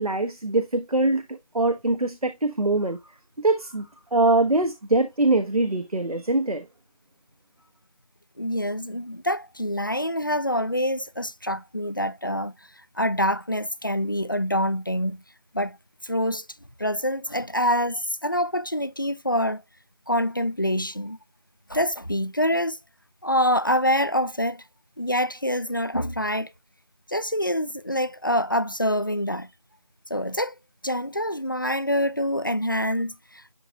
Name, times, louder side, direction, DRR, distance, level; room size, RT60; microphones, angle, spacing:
voice 1, 0.0-3.0 3.4-6.6, right 2 dB, 90° right, 1.2 m, -23 dB
voice 2, 8.4-12.5 13.0-15.2 15.5-15.8 16.0-16.5 16.8-19.6 20.1-21.2 21.7-22.8 23.2-24.6 25.0-26.5 27.1-29.5 30.1-30.5 30.8-33.5, equal, 35° left, 0.4 m, -26 dB
11.0 x 4.0 x 2.2 m
figure-of-eight pair, 170°, 18 cm